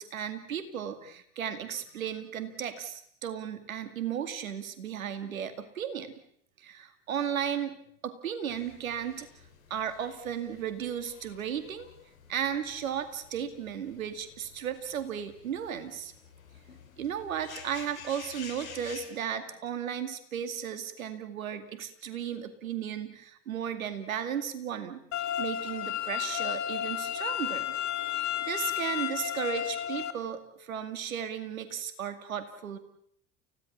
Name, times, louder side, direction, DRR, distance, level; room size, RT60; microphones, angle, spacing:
voice 1, 0.0-6.1 6.6-7.8 8.0-9.3 9.7-11.9 12.3-16.1 17.0-25.0 25.4-27.7 28.1-32.8, right 8 dB, 85° right, 10 dB, 2.3 m, -35 dB
sound 1, 8.5-19.1, left 6 dB, 90° left, 3.6 m, -51 dB
sound 2, 25.1-30.1, left 11 dB, 45° left, 2.3 m, -32 dB
29.5 x 16.5 x 7.2 m, 0.67 s
hypercardioid pair, 75°, 40 cm